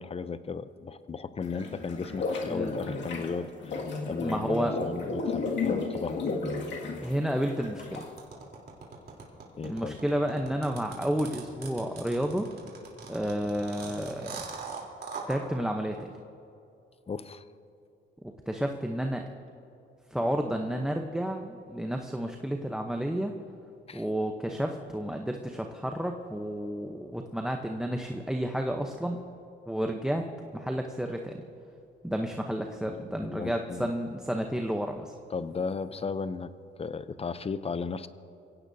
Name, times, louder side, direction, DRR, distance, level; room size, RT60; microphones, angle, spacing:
voice 1, 0.0-3.8 4.1-6.4 9.6-10.0 17.1-17.4 23.9-24.0 32.9-33.9 35.3-36.5 36.8-38.1, left 5 dB, 30° left, 13 dB, 0.6 m, -35 dB
sound 1, 1.4-8.2, left 3 dB, 65° left, 2.2 m, -33 dB
voice 2, 4.2-4.8 7.0-8.1 9.6-12.5 13.1-14.4 15.3-16.1 18.5-19.2 20.1-23.3 23.9-29.2 29.7-30.2 30.5-31.4 32.0-35.1, equal, 5° right, 3 dB, 0.8 m, -31 dB
sound 2, 7.9-15.4, right 5 dB, 55° right, 3.5 m, -41 dB
23.5 x 16.5 x 2.8 m, 2.6 s
cardioid pair, 90°, 20 cm